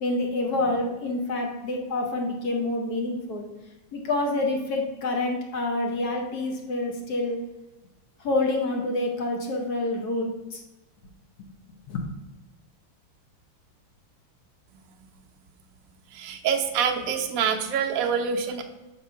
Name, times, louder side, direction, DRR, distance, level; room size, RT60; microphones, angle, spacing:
voice 1, 0.0-3.5 3.9-7.4 8.2-10.6 11.9-12.1, left 2 dB, 60° left, 2 dB, 1.0 m, -27 dB
voice 2, 16.1-18.6, right 7 dB, 90° right, 3 dB, 0.7 m, -26 dB
6.6 x 3.0 x 5.6 m, 1.1 s
omnidirectional pair, 2.4 m